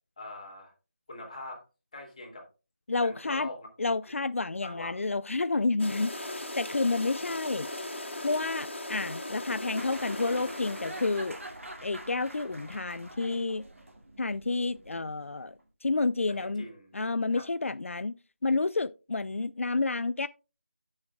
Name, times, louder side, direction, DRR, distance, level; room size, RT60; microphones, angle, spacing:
voice 1, 0.2-0.7 1.1-1.6 1.9-2.5 3.0-3.7 4.6-5.0 5.9-6.4 16.4-17.0 17.3-17.5, left 2 dB, 30° left, 2.6 m, -43 dB
voice 2, 2.9-3.5 3.8-7.7 8.2-11.4 11.8-13.6 14.2-15.5 15.8-16.7 16.9-18.2 18.4-20.3, left 3 dB, 85° left, 0.4 m, -30 dB
sound 1, 5.8-11.6, left 1 dB, 65° left, 2.2 m, -39 dB
sound 2, 9.8-15.6, right 1 dB, 90° right, 2.2 m, -46 dB
13.0 x 6.4 x 2.3 m
figure-of-eight pair, 175°, 7 cm